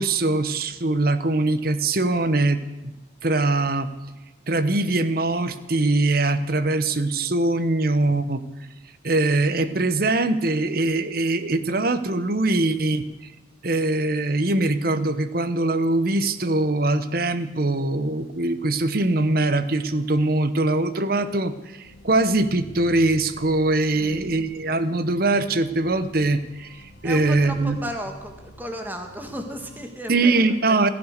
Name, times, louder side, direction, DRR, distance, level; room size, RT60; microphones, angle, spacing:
voice 1, 0.0-2.9 3.2-3.9 4.5-8.4 9.0-13.0 13.6-26.8 27.0-27.8 30.1-30.9, right 2 dB, 50° right, 12 dB, 1.0 m, -22 dB
sound 1, 21.8-29.9, left 1 dB, 70° left, 2.2 m, -47 dB
voice 2, 23.9-24.3 27.0-30.6, equal, 10° right, 4 dB, 1.7 m, -35 dB
15.5 x 14.0 x 6.6 m, 1.1 s
head